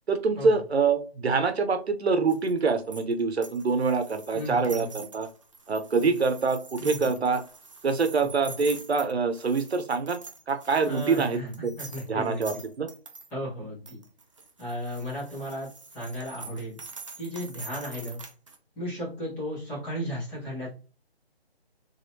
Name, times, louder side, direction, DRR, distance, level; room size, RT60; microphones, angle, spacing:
voice 1, 0.1-5.3 5.7-7.4 7.8-10.2 10.5-11.7 12.1-12.9, right 4 dB, 85° right, 10 dB, 0.8 m, -25 dB
sound 1, 2.3-13.3 13.9-18.6, right 3 dB, 30° right, 0.5 m, -45 dB
voice 2, 4.3-5.0 6.0-6.2 6.8-7.1 8.5-8.6 10.8-12.6 13.3-14.0 14.6-15.7 15.9-16.8 17.2-18.2 18.8-20.7, equal, 5° left, -9 dB, 0.8 m, -35 dB
4.1 x 3.4 x 2.7 m, 0.36 s
figure-of-eight pair, 160°, 32 cm